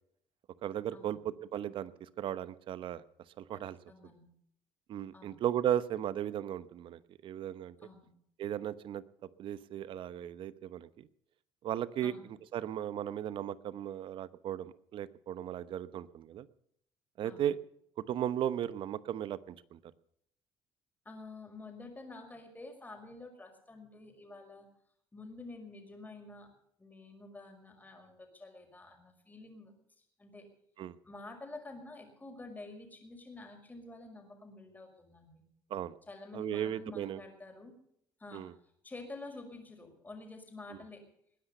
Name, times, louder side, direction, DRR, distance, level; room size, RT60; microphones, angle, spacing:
voice 1, 0.6-1.9 2.2-3.0 3.4-3.8 4.9-7.7 8.4-9.0 9.4-10.9 11.6-12.1 12.5-16.5 17.2-17.6 18.1-19.8 30.8-30.9 35.7-35.9 36.3-37.2 38.3-38.5, right 10 dB, 65° right, 16 dB, 1.0 m, -36 dB
voice 2, 3.5-4.3 5.1-5.4 7.8-8.1 12.0-12.3 17.2-17.5 21.1-24.7 25.1-26.5 26.8-29.7 30.2-30.5 31.0-35.4 36.1-37.7 38.2-38.4 38.8-41.0, left 2 dB, 20° left, 4 dB, 5.6 m, -49 dB
20.5 x 10.0 x 6.8 m, 0.71 s
cardioid pair, 90°, 10 cm